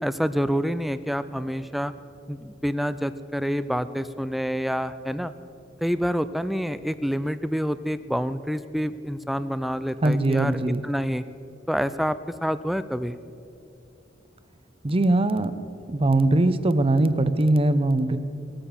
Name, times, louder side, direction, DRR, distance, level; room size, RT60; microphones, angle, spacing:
voice 1, 0.0-1.9 2.3-5.3 5.8-11.2 11.7-13.2, equal, ahead, 13 dB, 0.3 m, -27 dB
voice 2, 10.0-10.8 14.8-15.5 15.9-18.2, right 2 dB, 30° right, 12 dB, 0.7 m, -21 dB
19.0 x 8.9 x 7.1 m, 2.6 s
head